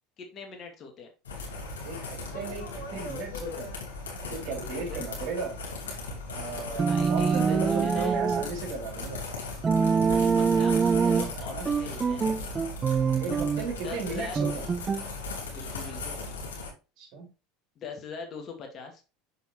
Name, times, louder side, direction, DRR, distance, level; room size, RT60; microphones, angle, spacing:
voice 1, 0.2-1.1 4.7-5.0 6.8-8.2 10.3-10.8 11.0-12.3 13.8-14.4 15.5-16.2 17.8-19.0, left 5 dB, 45° left, 4 dB, 2.0 m, -42 dB
sound 1, 1.2-16.7, left 3 dB, 85° left, 2.7 m, -37 dB
voice 2, 2.3-3.7 4.2-5.6 6.3-9.2 11.3-11.7 13.2-14.7 17.0-17.3, right 4 dB, 60° right, 1 dB, 3.4 m, -36 dB
sound 2, 6.8-8.5 9.6-11.3 11.7-13.7 14.3-15.0, right 5 dB, 25° right, 0.4 m, -25 dB
6.4 x 5.3 x 3.2 m, 0.31 s
hypercardioid pair, 80°, 0 cm